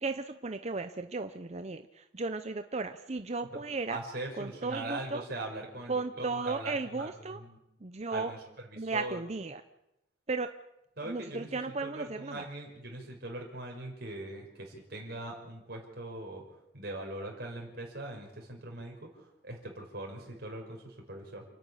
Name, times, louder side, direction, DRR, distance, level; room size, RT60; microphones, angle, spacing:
voice 1, 0.0-4.0 4.4-5.2 5.9-7.4 7.8-8.3 8.8-9.6 10.3-10.5 11.1-12.5, right 3 dB, 35° right, 9 dB, 0.7 m, -35 dB
voice 2, 3.9-7.6 8.1-8.4 8.8-9.2 11.0-11.5 11.8-16.4 16.7-21.4, right 1 dB, 55° right, 1 dB, 6.0 m, -41 dB
29.0 x 10.5 x 10.0 m, 0.90 s
head